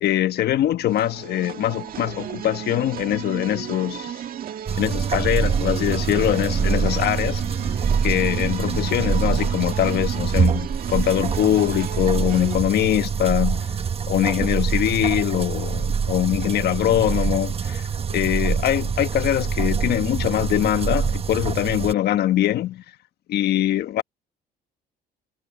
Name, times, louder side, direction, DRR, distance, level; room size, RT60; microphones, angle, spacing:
voice 1, 0.0-4.2 4.8-13.7 14.1-17.8 18.1-22.8 23.3-24.0, left 12 dB, 70° left, 1.4 m, -23 dB
sound 1, 0.9-12.6, right 10 dB, 55° right, 1.8 m, -34 dB
sound 2, 4.7-21.9, right 6 dB, 35° right, 1.1 m, -25 dB
cardioid pair, 100°, 18 cm